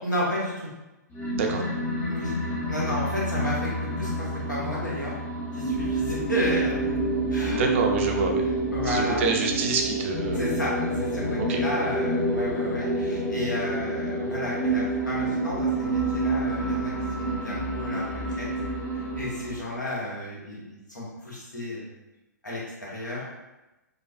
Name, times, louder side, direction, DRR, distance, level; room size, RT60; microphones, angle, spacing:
voice 1, 0.0-0.7 2.1-2.3 2.7-3.7 4.0-5.1 5.5-6.7 7.3-7.6 8.4-9.2 10.3-18.5 19.1-21.9 22.4-23.2, left 1 dB, 80° left, -6 dB, 1.4 m, -32 dB
sound 1, 1.1-19.7, right 1 dB, 20° left, 0.7 m, -28 dB
voice 2, 7.6-8.4 8.9-10.4 11.5-11.6, right 4 dB, 40° right, 1 dB, 0.5 m, -26 dB
4.9 x 2.2 x 2.4 m, 1.0 s
figure-of-eight pair, 115°, 10 cm